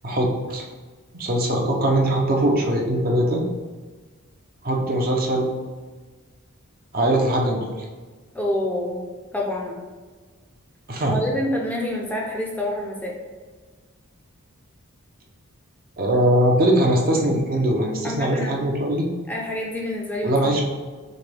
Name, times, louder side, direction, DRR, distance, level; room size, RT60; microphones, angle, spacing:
voice 1, 0.0-0.6 1.1-3.4 4.6-5.5 6.9-7.8 10.9-11.2 16.0-19.1 20.2-20.6, right 1 dB, 45° right, 0 dB, 0.7 m, -21 dB
voice 2, 8.3-9.0 9.3-9.8 11.1-13.2 18.0-18.6 19.3-20.6, left 1 dB, 5° left, -2 dB, 0.6 m, -27 dB
6.3 x 2.3 x 3.4 m, 1.4 s
head